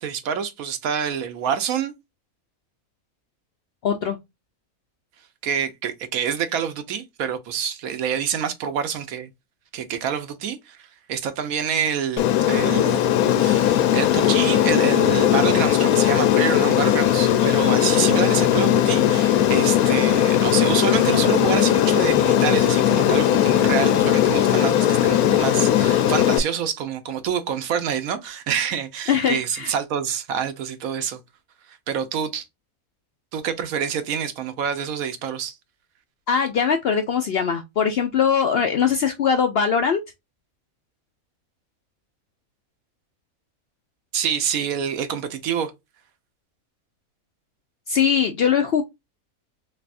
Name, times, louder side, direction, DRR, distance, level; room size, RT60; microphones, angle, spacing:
voice 1, 0.0-1.9 5.4-9.3 9.7-13.1 13.4-31.2 31.9-32.4 33.3-35.5 44.1-45.7, right 8 dB, 75° right, 1.1 m, -27 dB
voice 2, 3.8-4.2 29.1-29.7 36.3-40.0 47.9-48.8, left 7 dB, 65° left, 0.6 m, -21 dB
Aircraft, 12.2-26.4, left 11 dB, 90° left, 1.1 m, -18 dB
3.4 x 3.3 x 2.4 m
omnidirectional pair, 1.5 m